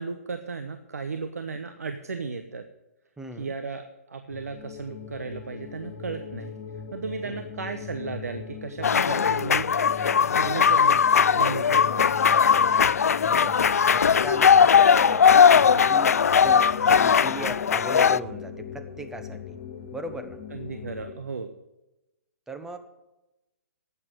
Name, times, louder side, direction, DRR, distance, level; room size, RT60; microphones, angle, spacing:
voice 1, 0.0-2.6 3.4-6.5 6.9-9.7 10.3-11.0 11.3-12.1 15.7-15.9 20.5-21.5, right 4 dB, 75° right, 8 dB, 1.0 m, -35 dB
voice 2, 3.2-3.5 7.2-7.5 13.3-14.7 15.0-19.6 19.9-20.4 22.5-22.8, right 1 dB, 5° right, 7 dB, 1.2 m, -38 dB
sound 1, 4.3-21.1, left 6 dB, 40° left, 2.3 m, -40 dB
sound 2, 8.8-18.2, left 7 dB, 70° left, 0.4 m, -19 dB
12.0 x 8.6 x 7.7 m, 0.98 s
figure-of-eight pair, 125°, 8 cm